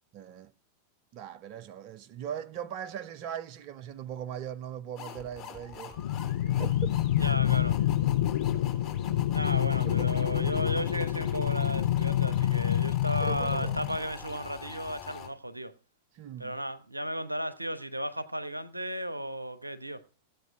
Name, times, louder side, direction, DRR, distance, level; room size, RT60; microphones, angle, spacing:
voice 1, 0.1-0.5 1.1-6.0 6.4-6.9 9.8-10.1 13.2-13.8 16.1-16.6, right 9 dB, 45° right, 0.8 m, -40 dB
sound 1, 5.0-15.3, left 8 dB, 35° left, 3.9 m, -45 dB
sound 2, 6.0-14.0, left 12 dB, 60° left, 0.6 m, -27 dB
voice 2, 7.2-7.8 9.3-15.7 16.4-20.0, equal, 85° right, 0.9 m, -34 dB
16.0 x 8.1 x 4.8 m
figure-of-eight pair, 90°, 0 cm